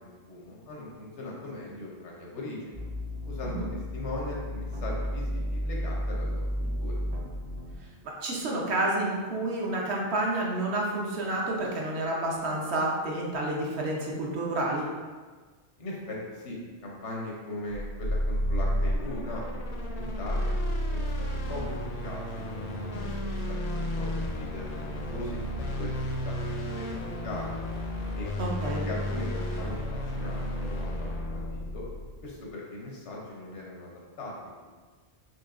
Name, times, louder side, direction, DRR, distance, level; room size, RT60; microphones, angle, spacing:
voice 1, 0.0-2.8 3.2-3.6 3.9-6.9 15.8-20.5 20.9-21.1 21.5-21.8 22.0-22.2 22.5-25.4 25.8-26.0 26.2-27.6 28.1-28.3 28.6-31.8 32.2-33.9 34.2-34.3, left 1 dB, 90° left, -3 dB, 1.2 m, -39 dB
sound 1, 2.7-7.8, equal, 45° right, 0.5 m, -33 dB
voice 2, 8.0-14.8 28.4-28.8, right 2 dB, 75° right, -2 dB, 1.0 m, -29 dB
sound 2, 17.7-32.3, equal, 55° left, 0.4 m, -32 dB
4.4 x 2.9 x 2.4 m, 1.4 s
omnidirectional pair, 1.2 m